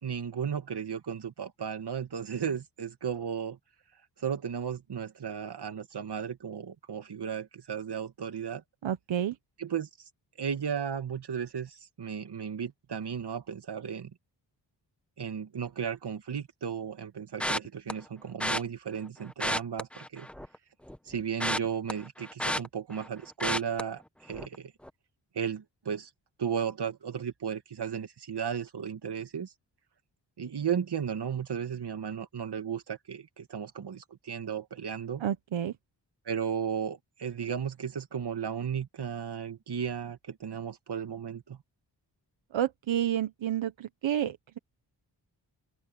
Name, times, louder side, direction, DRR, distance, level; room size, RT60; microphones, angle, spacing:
voice 1, 0.0-3.6 4.2-8.6 9.6-9.9 10.4-14.1 15.2-20.3 21.0-24.7 25.3-26.1 26.4-29.5 30.4-35.2 36.3-41.6, right 7 dB, 60° right, 2.4 m, -35 dB
voice 2, 8.8-9.4 35.2-35.7 42.5-44.4, right 10 dB, 85° right, 1.2 m, -29 dB
sound 1, 17.4-17.9 18.4-18.6 19.3-20.5 20.9-23.1 23.4-23.8 24.3-24.5 24.8-24.9, equal, 5° left, 1.2 m, -31 dB
open air
cardioid pair, 70°, 45 cm